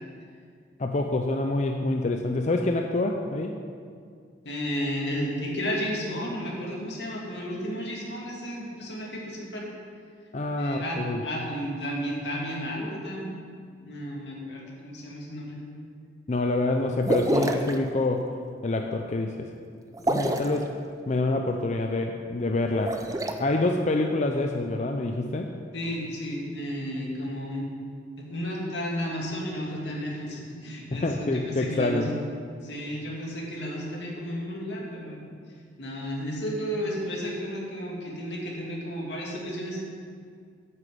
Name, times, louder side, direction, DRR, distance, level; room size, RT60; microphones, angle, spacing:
voice 1, 0.8-3.6 10.3-11.2 16.3-18.3 18.6-19.5 20.1-20.7 21.1-23.0 23.3-25.5 30.9-32.1, left 2 dB, 40° left, 4 dB, 0.5 m, -26 dB
voice 2, 4.4-9.7 10.6-13.3 13.8-15.6 25.7-27.7 28.2-32.2 32.6-35.2 35.8-39.8, equal, 85° left, -3 dB, 2.4 m, -33 dB
sound 1, 17.0-17.7 19.9-20.6 22.7-23.3, right 1 dB, 20° right, 0.6 m, -26 dB
9.0 x 6.5 x 7.8 m, 2.2 s
head